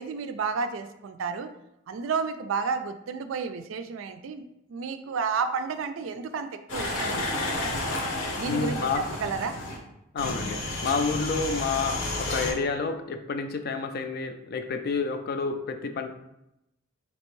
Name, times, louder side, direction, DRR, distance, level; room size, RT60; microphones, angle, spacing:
voice 1, 0.0-1.5 1.9-4.4 4.7-7.5 8.3-9.6, right 5 dB, 75° right, 9 dB, 0.4 m, -31 dB
sound 1, 6.7-9.8 10.2-12.5, left 2 dB, 65° left, 0.9 m, -31 dB
voice 2, 8.5-9.1 10.1-16.1, left 4 dB, 50° left, 8 dB, 0.4 m, -29 dB
4.3 x 2.9 x 3.1 m, 0.85 s
head